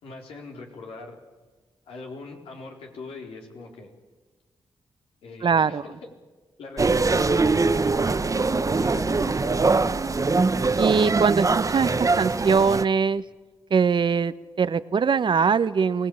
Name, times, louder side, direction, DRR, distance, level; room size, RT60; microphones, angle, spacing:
voice 1, 0.0-1.2 1.9-3.9 5.2-6.1 6.6-10.1, left 3 dB, 85° left, 1 dB, 4.4 m, -41 dB
voice 2, 5.4-5.8 10.8-13.2 13.7-16.1, right 5 dB, 55° right, 14 dB, 1.1 m, -22 dB
sound 1, 6.8-12.8, right 3 dB, 35° right, 1.1 m, -22 dB
24.0 x 18.0 x 8.9 m, 1.2 s
supercardioid pair, 50°, 9 cm